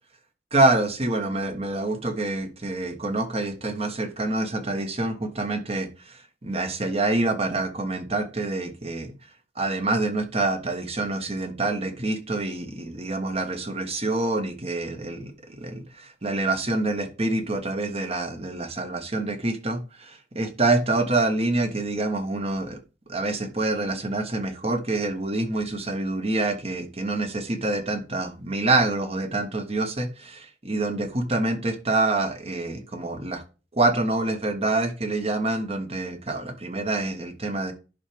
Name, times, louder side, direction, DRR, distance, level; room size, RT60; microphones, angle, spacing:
voice 1, 0.5-9.1 9.6-15.3 15.6-22.8 23.1-33.4 33.7-37.7, right 2 dB, 35° right, 7 dB, 1.3 m, -26 dB
11.0 x 5.8 x 3.4 m, 0.33 s
head